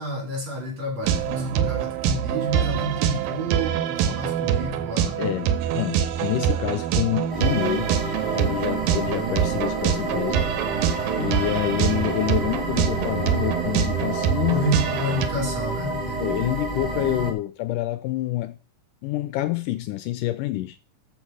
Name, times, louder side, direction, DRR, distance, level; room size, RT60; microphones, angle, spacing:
voice 1, 0.0-5.2 14.5-16.4, right 1 dB, 50° right, 4.8 m, -30 dB
sound 1, 1.0-15.3, right 9 dB, 90° right, 2.6 m, -25 dB
voice 2, 5.2-7.9 8.3-10.5 11.2-14.7 16.2-18.6 19.0-20.8, left 14 dB, 80° left, 2.1 m, -27 dB
sound 2, 7.3-17.3, right 2 dB, 30° right, 0.8 m, -30 dB
13.5 x 5.2 x 4.8 m
omnidirectional pair, 4.0 m